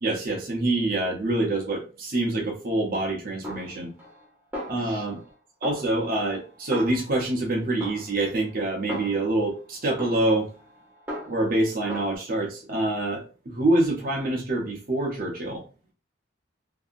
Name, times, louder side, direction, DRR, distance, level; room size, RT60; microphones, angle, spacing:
voice 1, 0.0-3.9 4.7-5.2 5.6-10.5 11.3-15.6, right 2 dB, 45° right, -1 dB, 0.6 m, -26 dB
Snare drum, 3.4-4.3 4.5-5.3 5.6-7.4 7.8-9.5 10.0-11.6 11.9-12.2, equal, 10° right, 0.9 m, -38 dB
2.7 x 2.6 x 2.4 m, 0.36 s
head